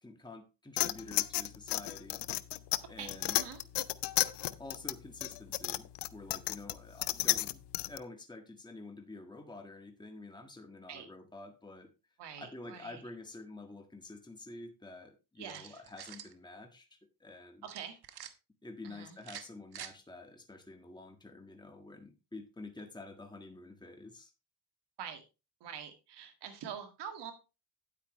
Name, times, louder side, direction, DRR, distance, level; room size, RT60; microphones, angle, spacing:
voice 1, 0.0-2.2 2.9-3.4 4.6-11.9 12.4-16.9 17.2-17.7 18.6-24.3, left 2 dB, 10° left, 4 dB, 1.6 m, -49 dB
sound 1, 0.8-8.0, left 15 dB, 85° left, 0.6 m, -33 dB
voice 2, 3.0-3.6 10.9-11.1 12.2-13.0 15.4-15.8 17.6-18.0 18.8-19.2 25.0-25.2 25.6-27.3, right 8 dB, 90° right, 7 dB, 2.0 m, -45 dB
sound 2, 15.4-16.3 17.7-18.3 19.2-19.9, right 10 dB, 70° right, 1.1 m, -47 dB
9.5 x 8.5 x 3.1 m, 0.28 s
cardioid pair, 75°, 40 cm